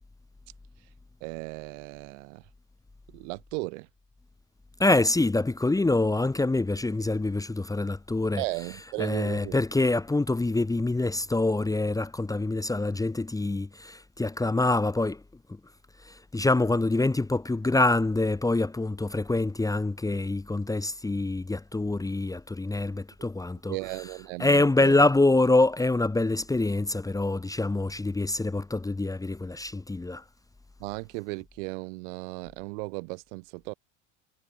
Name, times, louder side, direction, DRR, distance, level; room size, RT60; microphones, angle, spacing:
voice 1, 1.2-2.4 3.1-3.9 8.4-9.6 23.7-25.0 30.8-33.7, right 29 dB, 70° right, 4.7 m, -36 dB
voice 2, 4.8-8.4 9.0-15.2 16.0-23.8 24.4-30.2, left 2 dB, 10° left, 1.4 m, -25 dB
hypercardioid pair, 90°, 37 cm